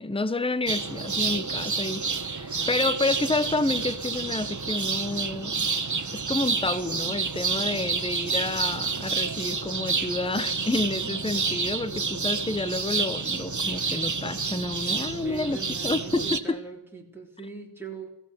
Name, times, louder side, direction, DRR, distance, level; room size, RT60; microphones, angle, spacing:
voice 1, 0.0-5.7 6.1-16.6, left 2 dB, 10° left, 1.0 m, -29 dB
sound 1, 0.7-16.4, right 4 dB, 35° right, 1.5 m, -29 dB
voice 2, 2.3-3.1 11.8-12.6 14.5-18.1, right 4 dB, 5° right, 4.0 m, -43 dB
21.0 x 16.5 x 7.9 m
wide cardioid pair, 80°, 50 cm